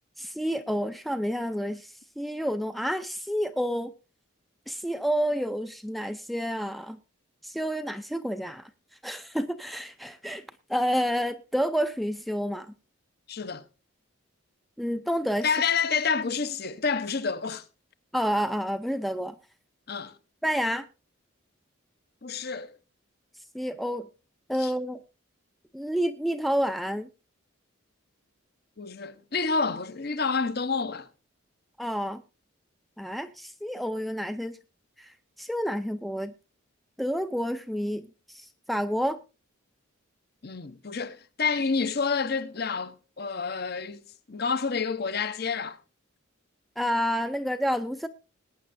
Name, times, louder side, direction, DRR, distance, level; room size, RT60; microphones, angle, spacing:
voice 1, 0.2-3.9 4.7-7.0 7.4-8.7 9.0-10.4 10.7-12.7 14.8-15.5 18.1-19.3 20.4-20.8 23.5-24.1 24.5-25.0 25.7-27.1 31.8-32.2 33.0-34.6 35.0-36.3 37.0-39.2 46.8-48.1, equal, ahead, 0.5 m, -29 dB
voice 2, 13.3-13.6 15.4-17.6 19.9-20.2 22.2-22.8 24.6-24.7 28.8-31.1 40.4-45.8, left 5 dB, 50° left, 0.9 m, -29 dB
20.5 x 9.5 x 2.6 m
head